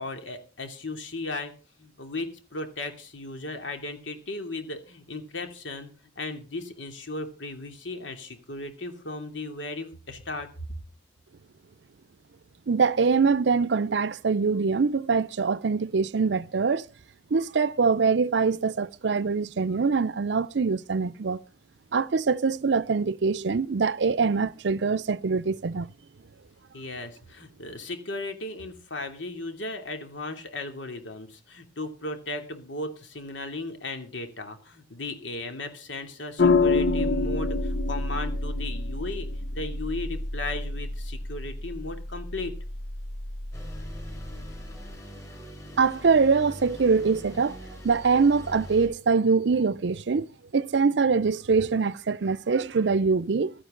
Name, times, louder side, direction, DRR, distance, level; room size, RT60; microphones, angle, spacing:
voice 1, 0.0-1.5 1.8-5.9 6.2-10.5 26.7-42.5 45.2-45.5, left 2 dB, 90° left, 2.9 m, -36 dB
voice 2, 12.7-16.9 17.3-21.4 21.9-25.9 45.8-47.6 47.8-53.5, right 5 dB, 70° right, 0.5 m, -24 dB
sound 1, 36.4-44.9, left 3 dB, 70° left, 0.9 m, -28 dB
sound 2, 43.5-48.9, equal, 15° left, 5.5 m, -43 dB
16.0 x 12.5 x 3.8 m
head